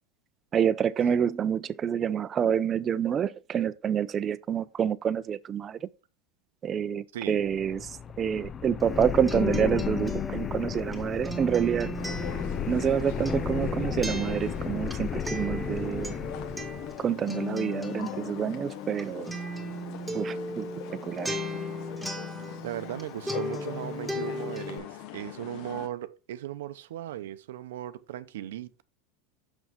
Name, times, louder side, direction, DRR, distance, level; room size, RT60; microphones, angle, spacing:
voice 1, 0.5-5.8 6.6-7.9 8.2-11.9 12.7-16.2 17.0-19.3 20.1-21.4, right 8 dB, 30° right, 0.5 m, -28 dB
voice 2, 7.1-7.5 22.6-28.8, right 12 dB, 80° right, 0.7 m, -37 dB
sound 1, 7.4-17.0, left 7 dB, 25° left, 0.4 m, -34 dB
Acoustic guitar, 8.8-23.0 23.3-24.8, left 2 dB, ahead, 1.7 m, -36 dB
sound 2, 12.0-25.9, left 11 dB, 55° left, 0.8 m, -42 dB
6.3 x 6.3 x 3.5 m
supercardioid pair, 120°, 0 cm